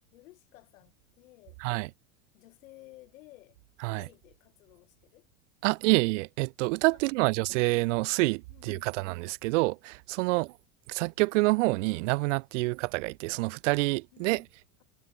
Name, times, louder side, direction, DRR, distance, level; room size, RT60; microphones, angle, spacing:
voice 1, 0.0-1.6 2.3-5.3 5.6-5.7 6.9-7.4 8.5-9.1 10.2-10.5 12.5-12.8 14.1-14.5, left 18 dB, 80° left, 2.4 m, -56 dB
voice 2, 5.6-10.5 10.9-14.4, right 24 dB, 70° right, 0.5 m, -27 dB
supercardioid pair, 145°, 40 cm